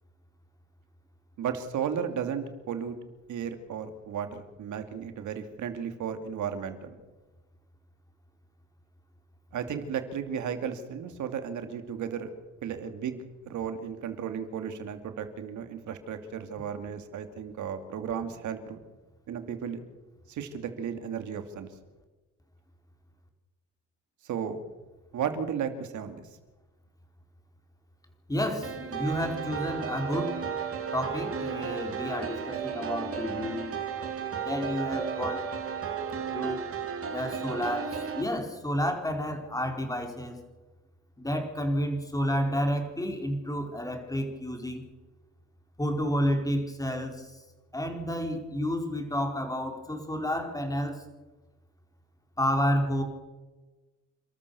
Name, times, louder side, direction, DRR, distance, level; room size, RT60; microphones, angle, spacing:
voice 1, 1.4-3.0 3.3-7.0 9.5-12.3 12.6-18.8 19.3-19.8 20.3-21.7 24.2-24.6 25.1-26.3, right 7 dB, 75° right, 8 dB, 2.6 m, -34 dB
voice 2, 28.3-30.4 30.9-33.7 34.4-35.5 36.3-36.6 37.1-40.4 41.2-44.8 45.8-47.3 47.7-51.0 52.4-53.0, equal, 10° left, 4 dB, 4.4 m, -30 dB
sound 1, 28.6-38.2, right 7 dB, 50° right, 3.1 m, -34 dB
28.5 x 13.5 x 7.0 m, 1.2 s
cardioid pair, 90°, 30 cm